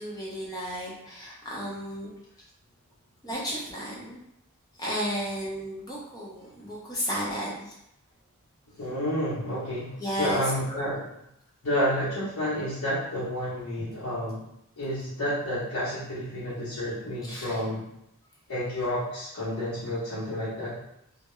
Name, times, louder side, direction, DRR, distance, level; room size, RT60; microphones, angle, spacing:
voice 1, 0.0-2.1 3.2-4.2 4.8-7.7 10.0-10.4 17.2-17.6, equal, 15° left, -6 dB, 0.6 m, -33 dB
voice 2, 8.8-11.1 11.6-14.4 14.8-17.8 18.5-20.8, equal, 80° left, -12 dB, 0.8 m, -30 dB
2.2 x 2.0 x 3.0 m, 0.79 s
head